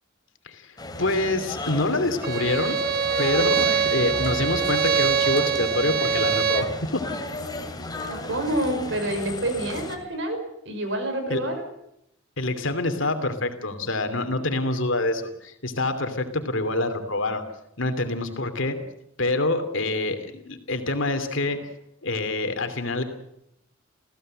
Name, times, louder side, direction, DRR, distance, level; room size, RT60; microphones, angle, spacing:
voice 1, 0.4-2.8 3.2-7.0 11.3-11.4 12.4-17.4 17.8-18.8 19.2-21.7 22.0-23.0, left 2 dB, 65° left, 8 dB, 2.8 m, -26 dB
sound 1, 0.8-10.0, left 2 dB, 20° left, 2.8 m, -35 dB
Bowed string instrument, 2.2-6.8, right 7 dB, 50° right, 1.5 m, -24 dB
voice 2, 8.0-10.4 10.7-11.5, right 1 dB, 65° right, 6 dB, 5.6 m, -27 dB
28.5 x 16.0 x 7.7 m, 0.81 s
head